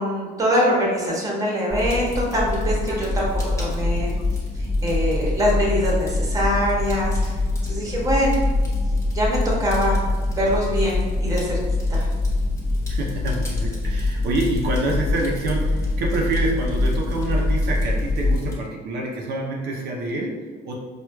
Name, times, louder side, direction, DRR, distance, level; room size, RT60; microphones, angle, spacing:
voice 1, 0.0-4.1 4.8-7.3 7.6-8.4 9.1-10.0 10.3-11.6 11.9-12.1, equal, 20° right, -3 dB, 1.0 m, -23 dB
Fire, 1.7-18.5, left 2 dB, 15° left, 1.1 m, -24 dB
voice 2, 12.9-20.8, right 2 dB, 75° right, -2 dB, 0.6 m, -27 dB
4.5 x 2.3 x 2.2 m, 1.5 s
cardioid pair, 110°, 17 cm